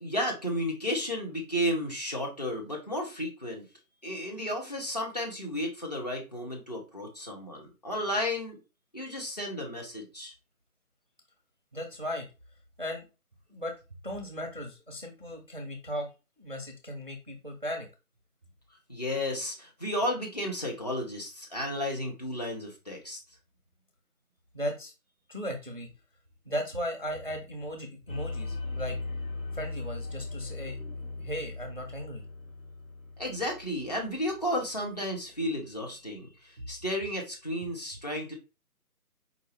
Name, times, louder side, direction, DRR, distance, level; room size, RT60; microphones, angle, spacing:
voice 1, 0.0-3.6 4.0-8.6 8.9-10.3 18.9-23.2 33.2-38.3, equal, 25° left, 0 dB, 0.8 m, -33 dB
voice 2, 11.7-12.3 12.8-13.1 13.5-13.8 14.0-16.1 16.4-17.9 24.5-24.9 25.3-25.9 26.5-29.0 29.5-30.8 31.2-32.2, equal, 35° right, 3 dB, 0.5 m, -36 dB
sound 1, 28.1-34.9, left 3 dB, 65° left, 1.5 m, -39 dB
4.7 x 2.6 x 3.2 m, 0.29 s
figure-of-eight pair, 155°, 45 cm